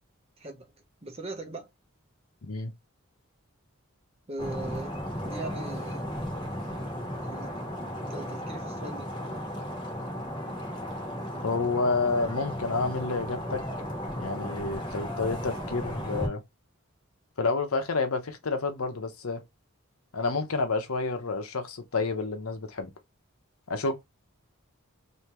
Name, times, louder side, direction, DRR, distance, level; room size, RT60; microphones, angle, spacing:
voice 1, 1.0-1.7 4.3-4.9 5.2-6.1 7.2-7.5 8.1-9.1, right 2 dB, 30° right, 0.8 m, -39 dB
voice 2, 2.4-2.7 11.4-13.6 14.2-16.4 17.4-19.4 20.1-22.9 23.7-24.0, left 3 dB, 90° left, 0.9 m, -29 dB
sound 1, 4.4-16.3, equal, 20° left, 1.1 m, -35 dB
3.3 x 2.8 x 2.9 m
head